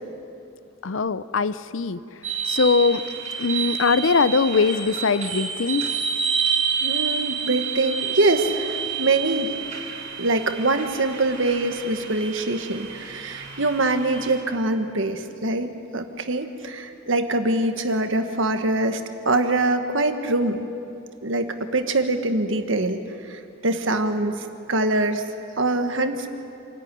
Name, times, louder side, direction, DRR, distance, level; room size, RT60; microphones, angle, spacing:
voice 1, 0.8-2.0 2.5-3.0 3.4-6.0, left 4 dB, 70° left, 15 dB, 0.6 m, -21 dB
sound 1, 2.2-14.4, right 6 dB, 35° right, 5.3 m, -29 dB
voice 2, 6.8-9.6 10.2-19.0 19.2-20.6 21.2-23.0 23.3-25.2 25.6-26.3, right 2 dB, 65° right, 7 dB, 1.5 m, -24 dB
27.0 x 14.0 x 9.9 m, 2.6 s
head